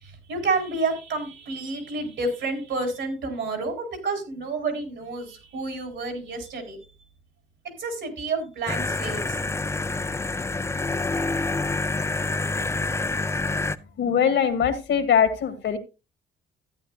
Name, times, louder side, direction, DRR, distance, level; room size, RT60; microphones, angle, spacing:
voice 1, 0.0-6.8 7.8-9.4, right 3 dB, 70° right, 4 dB, 4.1 m, -29 dB
sound 1, 8.7-13.8, left 3 dB, 15° left, 0.5 m, -27 dB
voice 2, 14.0-15.8, left 7 dB, 70° left, 9 dB, 1.9 m, -22 dB
14.0 x 9.6 x 2.4 m, 0.29 s
cardioid pair, 90°, 20 cm